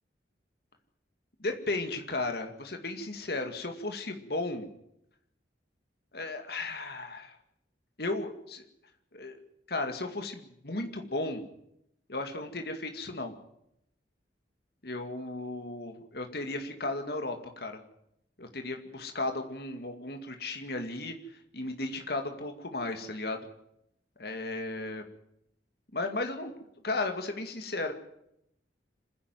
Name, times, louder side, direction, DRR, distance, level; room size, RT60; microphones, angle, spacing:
voice 1, 1.4-4.7 6.1-7.4 8.0-8.7 9.1-9.4 9.7-11.4 12.1-13.3 14.8-17.8 18.4-23.5 24.2-25.0 25.9-26.5 26.8-27.9, left 2 dB, 60° left, 5 dB, 2.3 m, -35 dB
26.5 x 10.5 x 9.4 m, 0.78 s
head